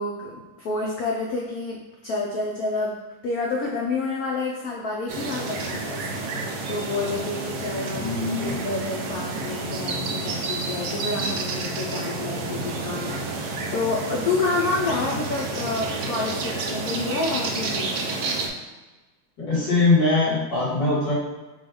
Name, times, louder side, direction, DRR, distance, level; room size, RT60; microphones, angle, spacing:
voice 1, 0.0-3.0 3.2-8.1 8.4-17.9, left 3 dB, 80° left, -2 dB, 0.8 m, -29 dB
sound 1, 5.1-18.5, right 3 dB, 70° right, 0.9 m, -30 dB
voice 2, 7.9-8.5 19.4-21.1, left 3 dB, 60° left, -7 dB, 2.2 m, -22 dB
4.3 x 2.3 x 4.7 m, 1.2 s
omnidirectional pair, 2.2 m